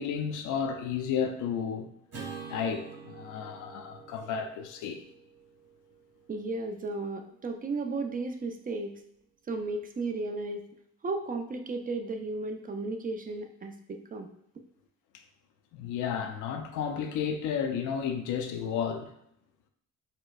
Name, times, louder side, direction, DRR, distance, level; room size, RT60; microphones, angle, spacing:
voice 1, 0.0-1.9 2.5-5.0 15.7-19.1, left 7 dB, 85° left, 0.5 m, -32 dB
Acoustic guitar / Strum, 2.1-6.5, right 5 dB, 55° right, 1.3 m, -46 dB
voice 2, 6.3-9.0 9.5-10.7 11.0-14.3, right 3 dB, 30° right, 0.4 m, -34 dB
4.3 x 2.1 x 2.3 m
cardioid pair, 90°, 30 cm